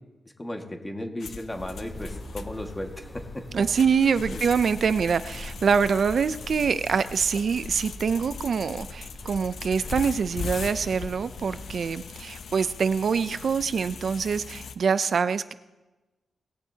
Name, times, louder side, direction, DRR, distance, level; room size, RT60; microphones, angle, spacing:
voice 1, 0.4-3.1 4.3-4.4, left 1 dB, 15° left, 3 dB, 1.7 m, -35 dB
sound 1, 1.2-14.7, left 5 dB, 70° left, 0.7 m, -40 dB
sound 2, 1.5-12.0, left 1 dB, 30° left, 3.1 m, -42 dB
voice 2, 3.5-15.5, right 6 dB, 60° right, 13 dB, 0.4 m, -25 dB
19.5 x 15.5 x 2.8 m, 1.1 s
wide cardioid pair, 115°, 0 cm